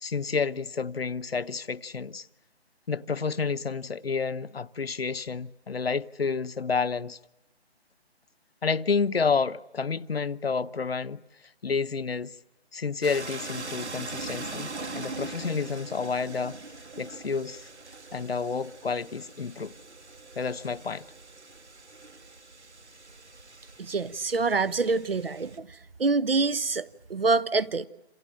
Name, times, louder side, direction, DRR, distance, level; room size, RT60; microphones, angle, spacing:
voice 1, 0.0-2.3 2.9-7.2 8.6-11.2 11.6-12.3 12.7-16.6 17.0-17.7 18.1-19.7 20.4-21.0, left 5 dB, 60° left, 0.9 m, -30 dB
sound 1, 13.0-25.6, right 3 dB, 90° right, 3.2 m, -42 dB
voice 2, 23.8-25.7 26.0-27.9, right 3 dB, 60° right, 1.0 m, -26 dB
28.5 x 27.5 x 7.6 m
figure-of-eight pair, 175°, 33 cm